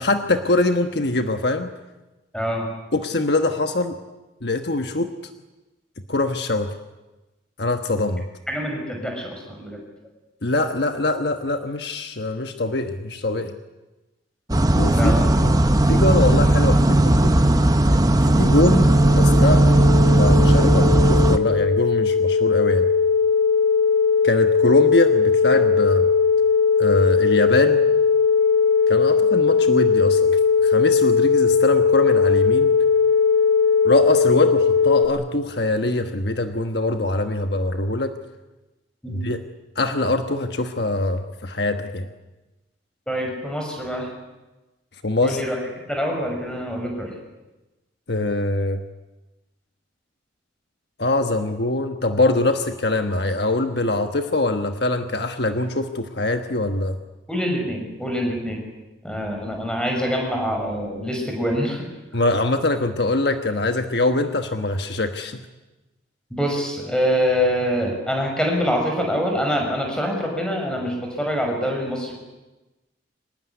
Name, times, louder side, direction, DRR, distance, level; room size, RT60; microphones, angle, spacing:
voice 1, 0.0-1.7 2.9-4.0 4.4-5.1 6.1-6.7 7.6-8.3 10.4-13.6 14.7-15.5 15.9-17.4 17.9-19.6 20.1-22.9 24.2-26.1 26.8-27.8 28.9-32.7 33.8-38.1 39.1-39.4 39.7-42.1 45.0-45.4 48.1-48.8 51.0-57.0 62.1-65.4, left 2 dB, 55° left, 6 dB, 1.3 m, -23 dB
voice 2, 2.3-2.7 8.5-9.8 14.9-15.3 15.6-15.7 39.0-39.2 43.1-44.1 45.2-45.6 45.9-47.1 57.3-58.6 59.0-61.8 66.3-72.1, equal, 5° left, 1 dB, 6.1 m, -25 dB
sound 1, 14.5-21.4, right 1 dB, 20° right, 0.9 m, -16 dB
sound 2, 18.0-35.0, left 5 dB, 35° left, 4.6 m, -19 dB
24.5 x 19.5 x 9.8 m, 1.1 s
head